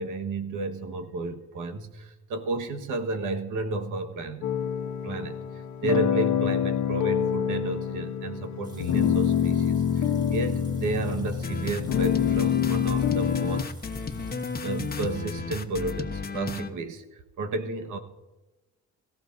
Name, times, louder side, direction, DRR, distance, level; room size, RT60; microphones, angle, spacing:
voice 1, 0.0-4.5 5.0-13.7 14.6-18.0, right 2 dB, 85° right, 6 dB, 1.5 m, -32 dB
sound 1, 4.4-13.6, left 8 dB, 70° left, 1.1 m, -26 dB
sound 2, 8.6-15.3, equal, 15° right, 4.9 m, -54 dB
sound 3, 11.4-16.7, left 4 dB, 30° left, 1.2 m, -33 dB
23.0 x 14.5 x 2.7 m, 1.1 s
cardioid pair, 90°, 30 cm